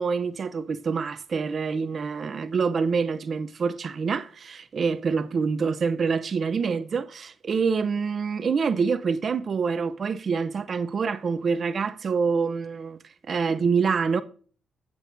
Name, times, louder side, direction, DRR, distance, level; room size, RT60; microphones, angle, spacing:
voice 1, 0.0-14.2, right 5 dB, 45° right, 0.6 m, -26 dB
14.5 x 8.5 x 2.6 m
cardioid pair, 90°, 0 cm